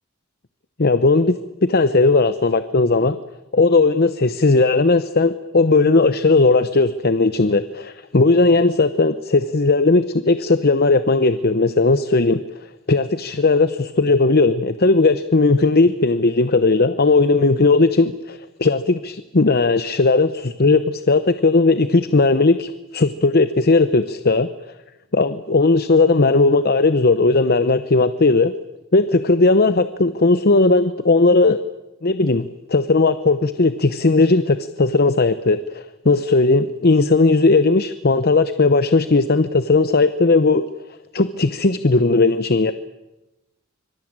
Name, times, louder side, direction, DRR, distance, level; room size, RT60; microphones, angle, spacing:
voice 1, 0.8-3.2 3.5-12.4 12.9-24.5 25.1-28.5 28.9-31.6 32.0-40.6 41.1-42.7, left 3 dB, 50° left, 12 dB, 0.9 m, -17 dB
25.5 x 23.5 x 8.9 m, 1.0 s
head